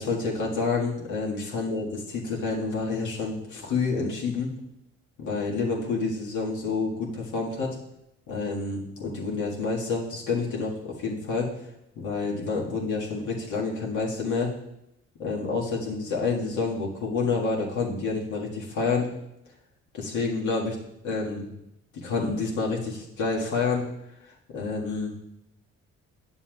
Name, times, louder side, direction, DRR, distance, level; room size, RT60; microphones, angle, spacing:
voice 1, 0.0-4.5 5.2-7.8 8.3-11.5 12.0-14.5 15.2-19.1 20.0-20.8 21.0-21.5 22.0-23.9 24.5-25.1, left 4 dB, 75° left, -3 dB, 1.8 m, -28 dB
9.7 x 7.1 x 2.4 m, 0.83 s
cardioid pair, 90°, 30 cm